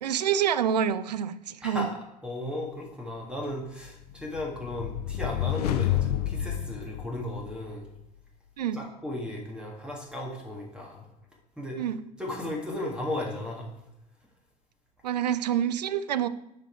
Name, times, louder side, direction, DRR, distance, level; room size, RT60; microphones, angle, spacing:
voice 1, 0.0-1.9 8.6-8.8 11.8-12.0 15.0-16.3, right 9 dB, 75° right, 15 dB, 0.5 m, -27 dB
voice 2, 1.6-7.9 8.7-11.1 11.6-11.8 12.2-13.7, left 1 dB, 5° right, -1 dB, 1.7 m, -35 dB
sound 1, 3.9-7.7, left 12 dB, 70° left, 0.7 m, -30 dB
7.7 x 5.1 x 4.5 m, 0.90 s
figure-of-eight pair, 75°, 21 cm